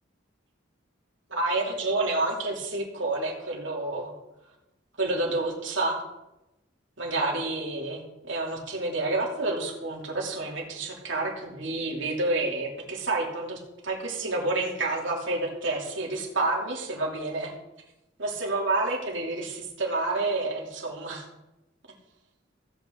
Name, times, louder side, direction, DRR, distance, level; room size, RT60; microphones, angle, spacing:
voice 1, 1.3-4.1 5.0-6.1 7.0-17.5 18.2-21.3, right 2 dB, 70° right, -1 dB, 2.9 m, -29 dB
16.5 x 8.3 x 3.8 m, 0.94 s
head